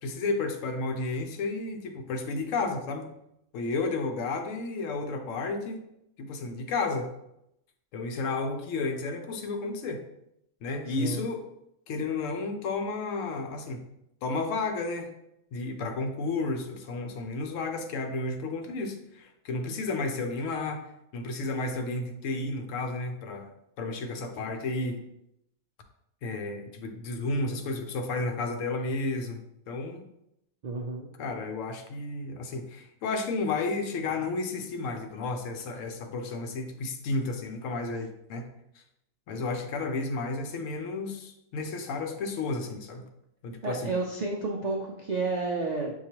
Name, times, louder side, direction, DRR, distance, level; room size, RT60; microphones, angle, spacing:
voice 1, 0.0-3.1 3.5-5.8 6.2-7.1 7.9-10.0 10.6-11.4 11.9-13.8 14.2-15.1 15.5-20.9 21.1-23.5 23.8-25.1 26.2-30.1 31.2-38.5 38.8-38.9 39.3-43.1 43.4-43.9, left 3 dB, 75° left, 6 dB, 1.0 m, -32 dB
voice 2, 30.6-31.1 43.6-45.9, right 3 dB, 70° right, -1 dB, 0.4 m, -31 dB
6.2 x 2.3 x 2.9 m, 0.81 s
omnidirectional pair, 1.4 m